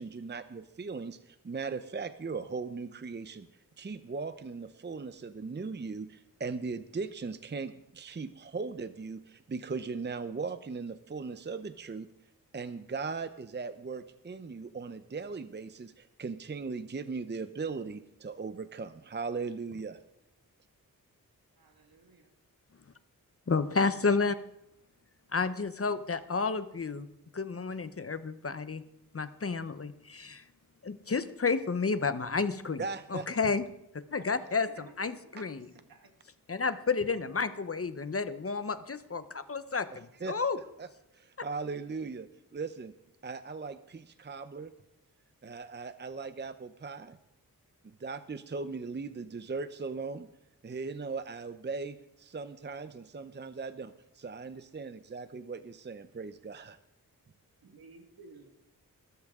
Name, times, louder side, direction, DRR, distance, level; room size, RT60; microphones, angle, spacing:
voice 1, 0.0-3.5 3.8-12.1 12.5-20.0 32.8-33.3 34.2-34.3 35.4-35.5 39.9-40.4 40.8-40.9 41.1-42.9 43.2-44.7 45.4-47.2 47.8-50.3 50.6-56.8, right 4 dB, 30° right, 11 dB, 0.6 m, -38 dB
voice 2, 21.6-22.2 34.7-34.9 35.2-35.5 35.9-36.1 57.6-58.5, right 3 dB, 75° right, 5 dB, 2.0 m, -54 dB
voice 3, 23.5-24.3 25.3-27.1 27.3-28.8 29.1-30.4 30.8-32.8 33.1-33.6 34.1-35.7 36.5-40.6, left 4 dB, 40° left, 12 dB, 0.8 m, -31 dB
20.5 x 13.0 x 3.7 m, 0.83 s
wide cardioid pair, 90°, 36 cm